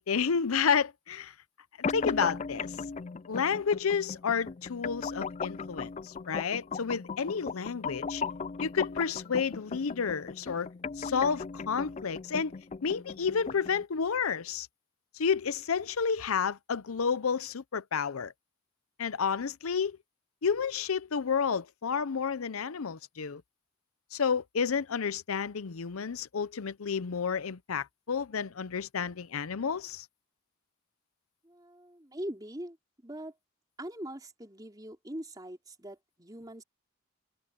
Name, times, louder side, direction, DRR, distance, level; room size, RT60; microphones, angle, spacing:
voice 1, 0.0-1.3 1.9-2.8 3.3-8.2 8.6-10.7 11.0-12.5 12.8-14.7 15.1-18.3 19.0-20.0 20.4-23.4 24.1-30.1, left 6 dB, 80° left, 0.6 m, -30 dB
sound 1, 1.8-13.8, left 5 dB, 30° left, 0.3 m, -37 dB
voice 2, 31.4-32.8 33.0-33.4 33.8-36.6, right 1 dB, 20° right, 3.5 m, -42 dB
head